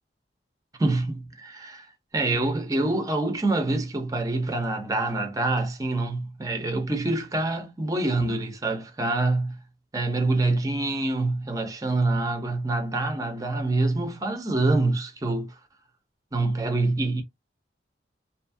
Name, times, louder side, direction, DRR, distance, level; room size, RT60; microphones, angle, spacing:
voice 1, 0.8-1.9 2.1-9.6 9.9-15.5 16.3-17.2, right 2 dB, 20° right, 0.5 m, -26 dB
2.7 x 2.4 x 2.6 m
head